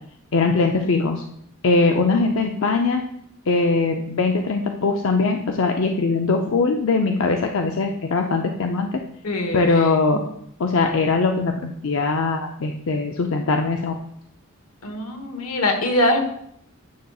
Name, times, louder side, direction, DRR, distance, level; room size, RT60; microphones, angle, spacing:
voice 1, 0.3-1.2 1.6-3.0 3.5-8.9 9.5-10.2 10.6-13.9, left 3 dB, 65° left, 3 dB, 0.5 m, -21 dB
voice 2, 9.2-9.9 14.8-16.2, left 1 dB, 90° left, 4 dB, 1.2 m, -23 dB
9.4 x 6.5 x 2.3 m, 0.72 s
head